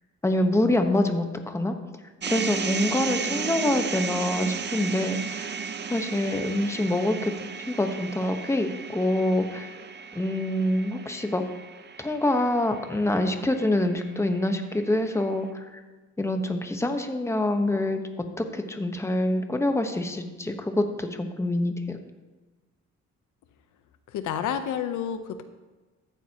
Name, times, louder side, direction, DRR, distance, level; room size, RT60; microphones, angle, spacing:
voice 1, 0.2-1.7 2.3-5.6 5.9-7.3 7.7-9.7 10.1-11.4 12.0-15.8 16.2-22.0, left 1 dB, 10° left, 6 dB, 1.1 m, -26 dB
sound 1, 2.2-14.4, right 6 dB, 35° right, 0.7 m, -34 dB
voice 2, 24.1-25.4, left 9 dB, 80° left, 9 dB, 0.8 m, -30 dB
14.0 x 9.0 x 2.9 m, 1.2 s
cardioid pair, 90°, 30 cm